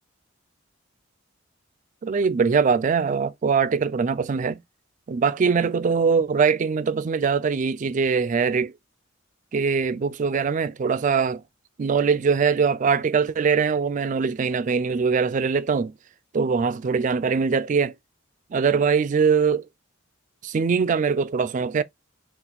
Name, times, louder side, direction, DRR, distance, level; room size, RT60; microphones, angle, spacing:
voice 1, 2.0-4.6 5.1-8.7 9.5-11.4 11.8-15.9 16.3-17.9 18.5-19.6 20.4-21.8, right 5 dB, 40° right, 0.3 m, -22 dB
4.1 x 2.5 x 4.0 m
head